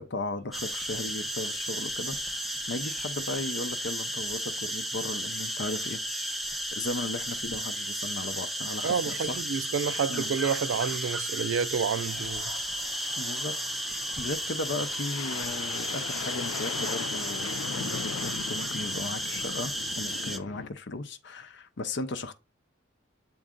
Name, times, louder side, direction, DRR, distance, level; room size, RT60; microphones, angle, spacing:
voice 1, 0.0-6.0 6.5-9.4 10.1-10.3 13.2-13.5 14.2-22.3, left 2 dB, 60° left, 0.7 m, -36 dB
sound 1, 0.5-20.4, equal, ahead, 0.5 m, -33 dB
voice 2, 8.8-12.5, right 6 dB, 65° right, 0.4 m, -29 dB
sound 2, 12.1-20.7, left 7 dB, 85° left, 0.3 m, -40 dB
7.4 x 3.9 x 3.7 m
head